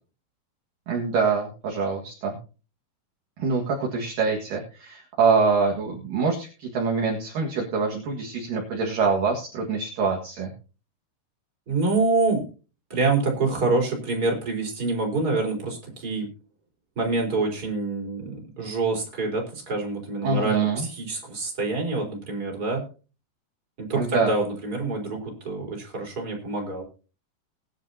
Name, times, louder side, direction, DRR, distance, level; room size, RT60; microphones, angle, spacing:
voice 1, 0.9-2.4 3.4-10.5 20.2-20.9 24.0-24.3, right 4 dB, 60° right, -1 dB, 3.1 m, -25 dB
voice 2, 11.7-12.4 12.9-16.3 17.0-22.8 23.8-26.8, right 3 dB, 20° right, 1 dB, 4.4 m, -26 dB
20.0 x 10.5 x 2.8 m, 0.34 s
omnidirectional pair, 4.9 m